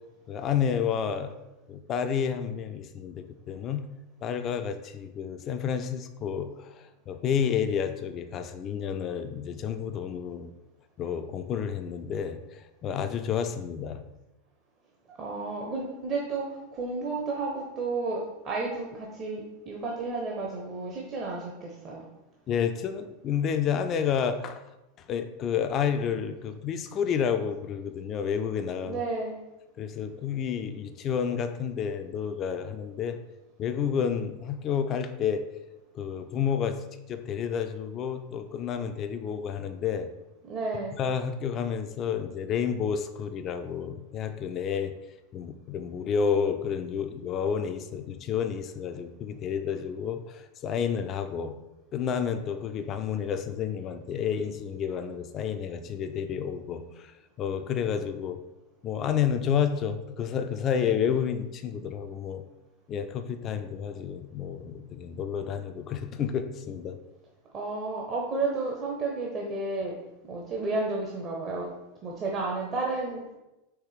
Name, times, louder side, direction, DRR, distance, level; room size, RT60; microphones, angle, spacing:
voice 1, 0.3-1.3 1.7-3.8 4.2-10.5 11.0-14.0 22.5-24.6 25.1-29.0 29.8-33.2 33.6-35.4 35.9-36.8 37.1-40.1 41.0-44.9 45.3-51.6 51.9-57.1 57.4-58.4 58.8-62.4 62.9-67.0, left 7 dB, 35° left, 8 dB, 0.3 m, -30 dB
voice 2, 15.2-22.1 28.8-29.4 40.4-41.0 67.5-69.9 70.3-71.7 72.0-73.3, right 3 dB, 35° right, -1 dB, 0.7 m, -32 dB
4.6 x 3.1 x 3.3 m, 0.96 s
figure-of-eight pair, 85°, 0 cm